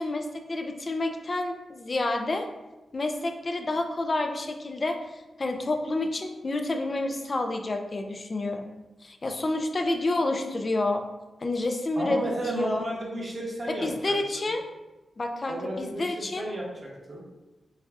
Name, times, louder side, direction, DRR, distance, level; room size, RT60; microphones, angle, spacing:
voice 1, 0.0-2.5 2.9-8.7 9.0-11.0 11.4-12.2 12.5-12.8 13.7-14.6 15.2-16.5, left 2 dB, 40° left, 5 dB, 0.4 m, -29 dB
voice 2, 12.0-14.5 15.5-17.2, right 1 dB, 45° right, -3 dB, 1.1 m, -33 dB
6.4 x 2.3 x 2.4 m, 1.1 s
cardioid pair, 80°, 0 cm